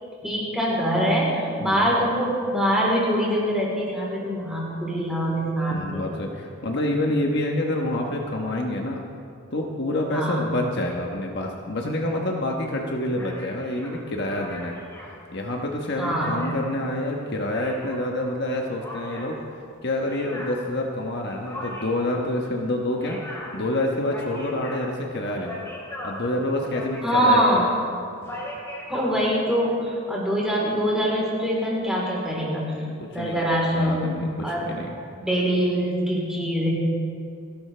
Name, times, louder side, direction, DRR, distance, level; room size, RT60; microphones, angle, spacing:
voice 1, 0.2-6.0 10.1-10.5 16.0-16.4 27.0-27.7 28.9-32.7 33.1-34.1 34.4-34.7 35.2-36.7, equal, 5° right, -5 dB, 3.7 m, -24 dB
voice 2, 1.6-2.0 5.7-9.0 9.5-14.7 15.3-19.4 19.8-23.2 23.5-25.6 26.0-27.6 32.8-34.9, left 1 dB, 50° left, 1 dB, 1.2 m, -27 dB
sound 1, 13.2-18.1 18.8-29.1, left 1 dB, 15° left, 3.3 m, -39 dB
29.5 x 12.0 x 3.4 m, 2.5 s
head